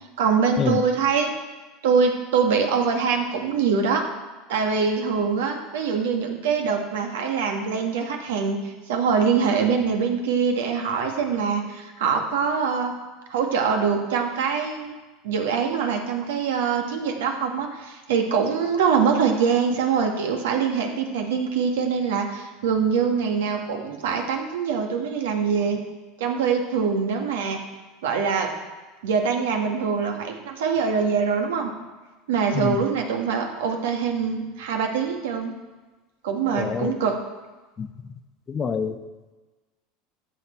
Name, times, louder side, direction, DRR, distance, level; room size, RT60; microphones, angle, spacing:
voice 1, 0.2-1.3 1.8-4.0 4.5-12.9 13.3-14.9 15.2-25.8 26.2-27.6 28.0-28.5 29.0-31.7 32.3-35.5 36.2-37.1, right 6 dB, 85° right, 3 dB, 1.6 m, -24 dB
voice 2, 36.6-36.9 37.8-37.9 38.5-39.0, left 6 dB, 30° left, 9 dB, 0.8 m, -26 dB
13.5 x 6.9 x 4.4 m, 1.2 s
supercardioid pair, 105°, 0 cm